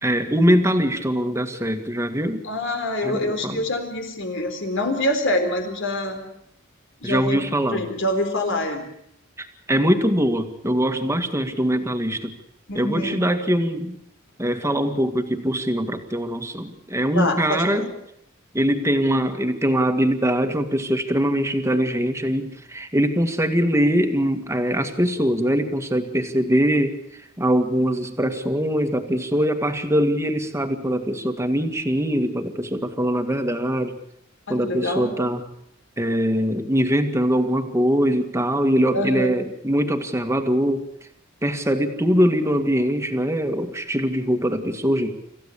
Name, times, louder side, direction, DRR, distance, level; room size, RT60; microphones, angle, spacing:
voice 1, 0.0-2.5 3.0-3.6 7.0-7.9 9.4-12.3 12.8-14.0 14.4-17.9 18.5-34.0 34.5-35.5 36.0-40.9 41.4-45.1, equal, 15° right, 7 dB, 2.0 m, -22 dB
voice 2, 2.4-6.3 7.0-7.4 7.7-8.8 12.7-13.2 17.1-17.9 34.5-35.2 38.9-39.4, left 1 dB, 65° left, 6 dB, 3.9 m, -25 dB
26.5 x 15.0 x 8.5 m, 0.73 s
head